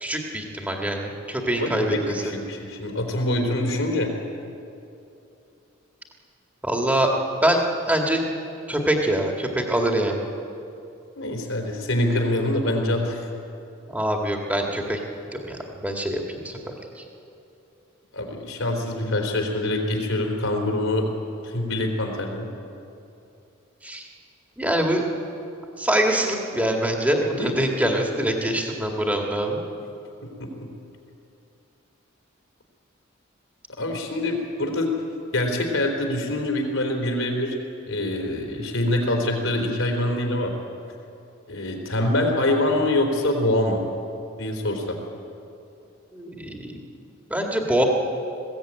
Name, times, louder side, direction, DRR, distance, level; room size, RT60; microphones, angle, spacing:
voice 1, 0.0-1.9 6.6-7.6 7.9-8.2 8.7-10.3 13.9-15.0 15.4-17.0 23.8-24.0 24.6-25.0 25.8-29.6 46.1-46.8 47.3-47.8, right 1 dB, 5° right, 1 dB, 2.1 m, -24 dB
voice 2, 1.6-4.1 11.2-13.3 18.1-21.1 21.4-22.5 27.4-27.7 30.4-30.7 33.8-34.9 35.3-37.6 37.9-40.5 41.5-43.8 44.4-45.0, left 1 dB, 75° left, 2 dB, 3.7 m, -25 dB
20.5 x 16.0 x 9.0 m, 2.7 s
head